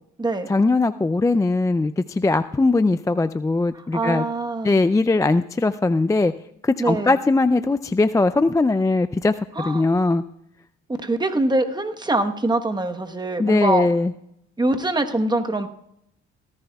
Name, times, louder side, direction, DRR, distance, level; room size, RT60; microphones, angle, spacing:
voice 1, 0.5-4.3 4.6-6.3 6.6-10.2 13.4-14.1, left 3 dB, 10° left, 12 dB, 0.3 m, -20 dB
voice 2, 3.7-4.7 6.8-7.1 9.5-9.9 11.0-13.9 14.6-15.7, right 2 dB, 15° right, 6 dB, 1.1 m, -23 dB
18.0 x 14.0 x 2.3 m, 0.77 s
cardioid pair, 90°, 30 cm